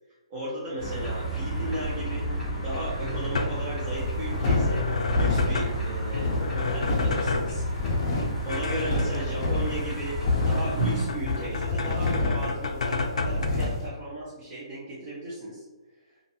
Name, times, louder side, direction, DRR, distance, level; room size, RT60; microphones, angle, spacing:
voice 1, 0.3-2.3 2.6-7.7 8.4-15.6, right 1 dB, 30° right, -9 dB, 0.8 m, -36 dB
sound 1, 0.8-11.1, right 2 dB, ahead, 0.8 m, -32 dB
sound 2, 2.8-13.5, left 3 dB, 90° left, 0.4 m, -32 dB
sound 3, 4.0-13.9, left 3 dB, 30° left, 0.6 m, -28 dB
2.5 x 2.5 x 2.7 m, 1.2 s
hypercardioid pair, 165°, 3 cm